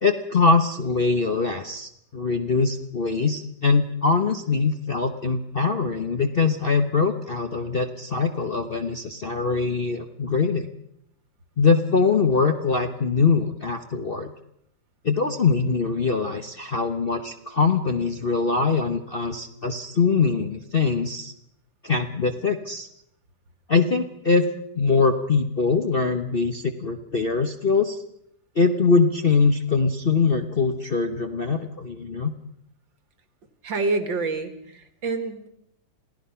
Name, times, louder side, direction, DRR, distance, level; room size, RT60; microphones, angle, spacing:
voice 1, 0.0-10.7 11.6-14.3 15.0-21.3 21.8-22.9 23.7-24.5 24.7-28.0 28.5-32.3, left 4 dB, 40° left, 6 dB, 1.0 m, -22 dB
voice 2, 33.6-35.5, right 3 dB, 75° right, 9 dB, 2.6 m, -27 dB
27.5 x 17.0 x 5.7 m, 0.76 s
omnidirectional pair, 2.0 m